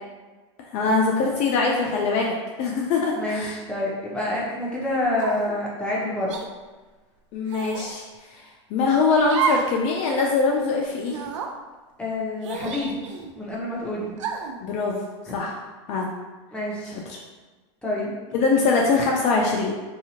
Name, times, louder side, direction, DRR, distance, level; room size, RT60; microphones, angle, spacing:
voice 1, 0.7-3.5 7.3-8.0 8.3-11.2 14.6-15.1 15.3-15.6 15.9-16.1 16.9-17.2 18.3-19.8, left 4 dB, 45° left, -1 dB, 0.4 m, -23 dB
voice 2, 3.1-6.3 12.0-13.0 13.3-14.1 15.3-15.4 16.5-17.0 17.8-18.1, left 1 dB, 5° left, -5 dB, 0.8 m, -27 dB
sound 1, 5.2-5.6 6.3-6.5 7.5-7.9 9.3-9.8 10.1-10.2 11.1-11.5 12.4-13.3 14.2-14.6, right 5 dB, 85° right, 0.4 m, -29 dB
2.7 x 2.3 x 2.8 m, 1.3 s
hypercardioid pair, 110°, 15 cm